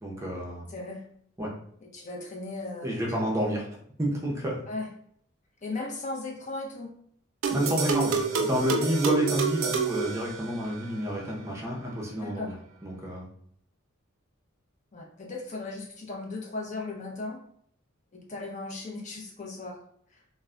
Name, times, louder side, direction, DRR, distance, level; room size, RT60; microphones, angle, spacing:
voice 1, 0.0-0.7 1.4-1.5 2.8-3.7 4.0-4.6 7.5-12.5 12.8-13.3, equal, 15° right, -3 dB, 0.5 m, -29 dB
voice 2, 0.7-1.1 1.8-3.0 4.7-4.9 5.6-6.9 12.2-12.5 14.9-17.4 18.1-19.8 20.1-20.2, left 2 dB, 35° left, -1 dB, 0.5 m, -37 dB
sound 1, 7.4-10.9, right 5 dB, 85° right, 0.4 m, -28 dB
2.2 x 2.1 x 3.5 m, 0.65 s
head